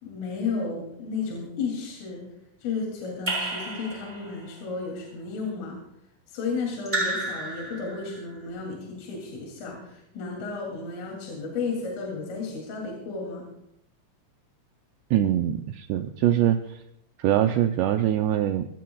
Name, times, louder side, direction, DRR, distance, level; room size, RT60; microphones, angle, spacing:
voice 1, 0.0-2.3 2.6-5.8 6.3-13.5, left 4 dB, 75° left, -1 dB, 5.4 m, -33 dB
Raindrop / Drip, 3.3-4.5 6.8-8.2, right 2 dB, 10° right, 5.7 m, -31 dB
voice 2, 15.1-16.8 17.2-18.7, right 11 dB, 85° right, 6 dB, 2.4 m, -23 dB
26.0 x 16.5 x 2.4 m, 0.78 s
omnidirectional pair, 5.7 m